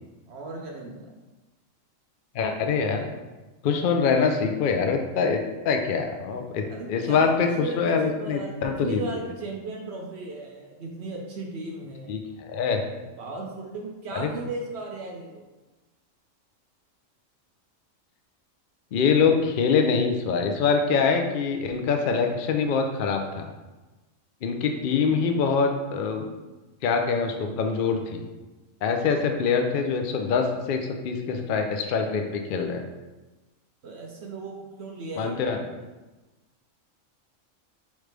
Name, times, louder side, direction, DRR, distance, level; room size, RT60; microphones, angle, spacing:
voice 1, 0.3-1.1 6.7-12.1 13.2-15.4 33.8-35.6, right 2 dB, 65° right, 0 dB, 0.8 m, -36 dB
voice 2, 2.3-3.1 3.6-6.6 6.9-9.2 12.1-12.8 14.1-14.3 18.9-23.5 24.4-26.3 26.8-28.2 28.8-32.8 35.2-35.6, left 5 dB, 65° left, 4 dB, 0.5 m, -24 dB
4.9 x 3.2 x 3.3 m, 1.2 s
omnidirectional pair, 1.4 m